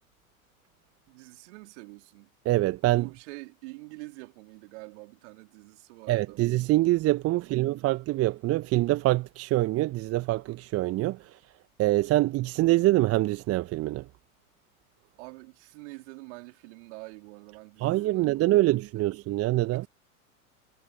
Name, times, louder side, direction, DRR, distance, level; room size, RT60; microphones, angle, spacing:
voice 1, 1.1-2.3 2.9-6.4 7.3-7.7 15.2-19.1 19.7-19.9, right 26 dB, 50° right, 4.2 m, -46 dB
voice 2, 2.4-3.1 6.1-11.2 11.8-14.0 17.8-19.8, right 17 dB, 35° right, 1.3 m, -25 dB
figure-of-eight pair, 85°, 43 cm